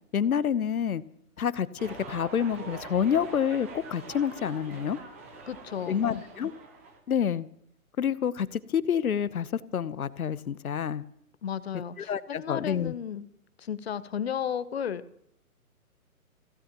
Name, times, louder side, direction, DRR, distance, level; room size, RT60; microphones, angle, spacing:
voice 1, 0.1-1.0 1.4-5.0 5.9-6.5 7.1-7.5 8.0-11.0 12.0-12.9, left 8 dB, 75° left, 17 dB, 1.0 m, -28 dB
sound 1, 1.8-7.0, right 3 dB, 10° right, 0.7 m, -44 dB
voice 2, 5.5-6.2 11.4-13.3 13.6-15.0, left 8 dB, 45° left, 15 dB, 1.0 m, -34 dB
27.5 x 16.0 x 3.0 m, 0.73 s
hypercardioid pair, 155°, 44 cm